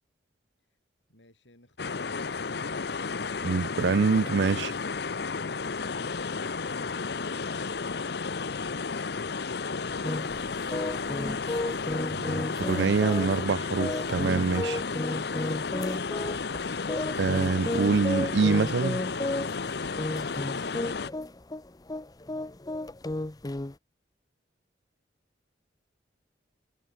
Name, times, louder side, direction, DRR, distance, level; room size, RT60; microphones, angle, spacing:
voice 1, 1.1-3.0, left 1 dB, 85° left, 7.9 m, -57 dB
sound 1, 1.8-21.1, left 4 dB, 65° left, 0.8 m, -33 dB
voice 2, 3.4-4.7 12.1-14.8 17.1-19.0, right 4 dB, 70° right, 0.5 m, -25 dB
sound 2, 10.0-23.7, left 1 dB, 20° left, 0.7 m, -33 dB
head